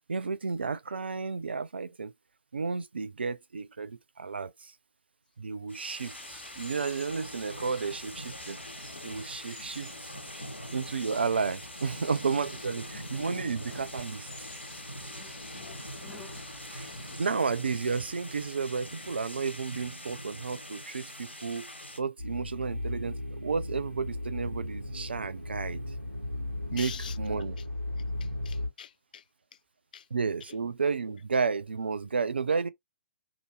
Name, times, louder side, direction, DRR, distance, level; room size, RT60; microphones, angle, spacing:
voice 1, 0.1-2.1 2.5-4.7 5.4-8.6 9.0-10.1 10.7-14.3 16.7-16.9 17.2-21.7 22.0-25.8 26.7-26.9 27.2-27.6 30.1-32.7, right 5 dB, 65° right, 0.4 m, -32 dB
sound 1, 5.7-22.0, equal, 90° left, 1.3 m, -43 dB
Cricket, 6.0-17.2, left 3 dB, 15° left, 1.2 m, -52 dB
voice 2, 15.6-15.9 16.8-17.2 26.7-27.2 27.6-27.7 28.0-29.6 29.9-30.1 30.4-30.6, left 8 dB, 50° left, 0.3 m, -46 dB
sound 2, 22.2-28.7, left 1 dB, 85° right, 1.0 m, -36 dB
2.9 x 2.6 x 3.1 m
figure-of-eight pair, 125°, 6 cm